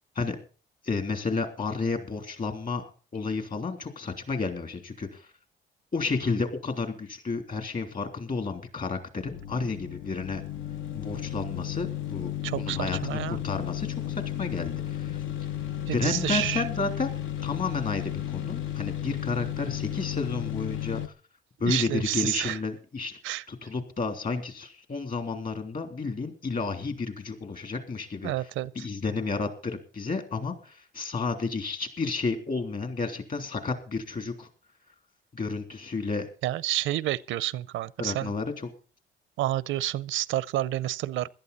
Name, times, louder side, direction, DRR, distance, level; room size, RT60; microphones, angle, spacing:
voice 1, 0.8-5.3 5.9-10.4 10.9-15.2 15.8-17.1 17.4-21.0 21.6-23.2 23.5-28.3 28.7-34.5 35.3-36.3 38.0-38.7, left 4 dB, 45° left, 3.1 m, -31 dB
sound 1, 9.2-21.1, left 12 dB, 80° left, 0.8 m, -33 dB
voice 2, 12.4-13.4 15.9-16.6 21.6-22.6 23.2-23.4 28.2-28.9 36.4-38.3 39.4-41.3, right 14 dB, 85° right, 0.5 m, -29 dB
16.5 x 12.0 x 4.1 m
cardioid pair, 90°, 20 cm